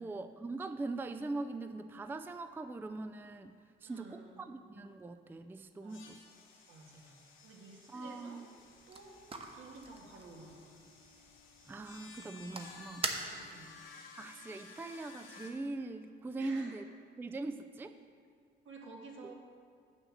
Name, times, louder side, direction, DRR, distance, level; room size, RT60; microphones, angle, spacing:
voice 1, 0.0-3.5 3.8-6.2 7.9-8.5 11.7-13.1 14.1-16.9 17.2-18.0, right 3 dB, 10° right, 9 dB, 0.3 m, -41 dB
voice 2, 3.9-4.5 5.8-6.0 6.7-8.4 8.9-9.1 9.5-10.8 13.3-13.7 16.4-16.8 18.6-19.3, right 3 dB, 75° right, -1 dB, 1.8 m, -52 dB
sound 1, 5.9-15.5, left 4 dB, 85° left, 1.3 m, -56 dB
sound 2, 8.6-13.8, right 3 dB, 30° right, 1.0 m, -44 dB
8.0 x 6.4 x 6.4 m, 2.2 s
cardioid pair, 90°, 20 cm